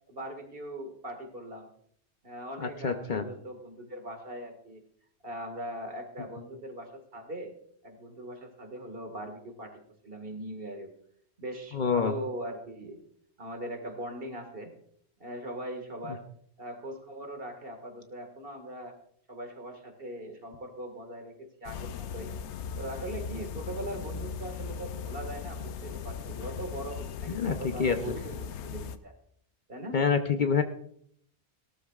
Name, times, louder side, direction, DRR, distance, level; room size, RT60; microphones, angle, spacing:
voice 1, 0.1-1.7 2.2-4.8 5.2-7.5 7.8-10.9 11.4-13.0 13.4-14.7 15.2-16.2 16.6-18.9 19.3-22.3 22.8-29.1 29.7-30.0, right 1 dB, 55° right, 4 dB, 2.1 m, -40 dB
voice 2, 2.6-3.3 11.7-12.1 27.3-28.2 29.9-30.6, left 6 dB, 50° left, 7 dB, 0.9 m, -27 dB
sound 1, 21.6-29.0, left 6 dB, 90° left, 0.9 m, -38 dB
17.5 x 13.0 x 2.4 m, 0.64 s
omnidirectional pair, 1.1 m